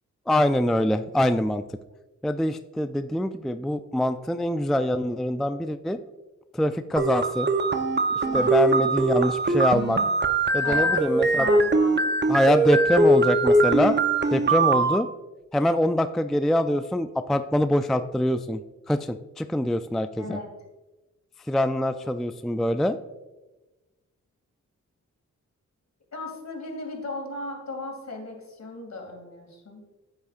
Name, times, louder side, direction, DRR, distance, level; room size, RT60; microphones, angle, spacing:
voice 1, 0.3-1.6 2.2-6.0 6.5-7.5 8.3-10.0 10.5-11.5 12.3-14.0 14.3-15.1 15.5-18.6 18.9-20.4 21.5-23.0, left 1 dB, ahead, 10 dB, 0.3 m, -24 dB
sound 1, 7.0-15.0, right 2 dB, 35° right, 0.8 m, -22 dB
voice 2, 10.6-12.1 20.2-20.5 26.1-29.8, left 2 dB, 60° left, 1 dB, 2.6 m, -36 dB
9.8 x 8.1 x 2.5 m, 1.1 s
cardioid pair, 60°, 31 cm